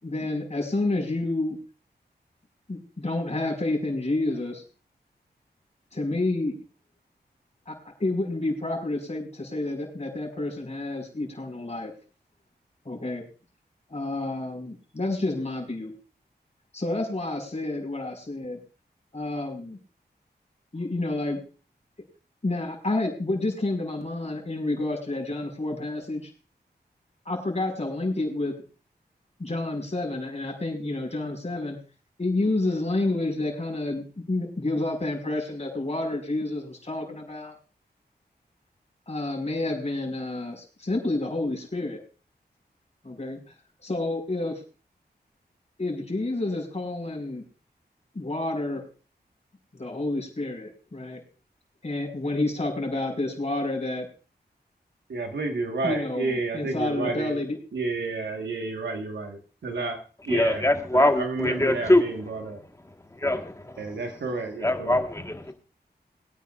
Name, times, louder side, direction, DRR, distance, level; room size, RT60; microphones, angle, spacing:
voice 1, 0.0-1.6 2.7-4.6 5.9-6.6 7.7-11.9 12.9-13.2 13.9-15.9 16.7-18.6 19.1-19.8 20.7-21.4 22.4-26.3 27.3-28.5 29.4-31.8 32.2-37.5 39.1-42.0 43.0-43.4 43.8-44.6 45.8-47.4 48.1-48.8 49.7-51.2 51.8-54.1 55.8-57.6, left 2 dB, 40° left, 5.2 m, -29 dB
voice 2, 55.1-57.4 57.7-60.0 60.3-60.7 60.9-62.6 63.8-65.0, right 3 dB, 85° right, 1.6 m, -31 dB
voice 3, 60.3-62.0 63.2-63.8 64.6-65.5, left 1 dB, 15° left, 1.5 m, -23 dB
22.5 x 9.3 x 2.5 m
wide cardioid pair, 65°, 18 cm